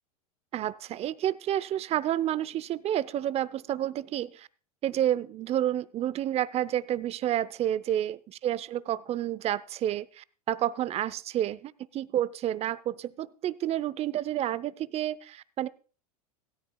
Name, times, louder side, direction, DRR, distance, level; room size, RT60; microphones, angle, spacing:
voice 1, 0.5-4.5 4.8-15.7, right 11 dB, 30° right, 18 dB, 0.7 m, -30 dB
16.5 x 13.5 x 2.3 m, 0.37 s
hypercardioid pair, 100°, 20 cm